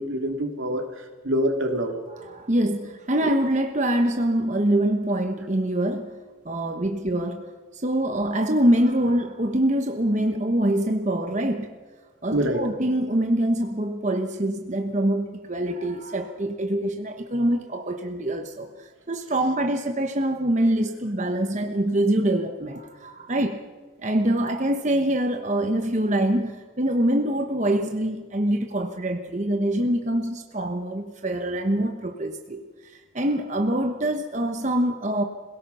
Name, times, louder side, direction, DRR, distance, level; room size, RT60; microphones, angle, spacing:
voice 1, 0.0-2.0 12.3-12.6, equal, 75° right, 3 dB, 2.8 m, -26 dB
voice 2, 2.1-11.7 12.2-23.6 24.0-35.2, right 1 dB, 35° right, 5 dB, 1.1 m, -25 dB
26.5 x 17.5 x 5.7 m, 1.4 s
head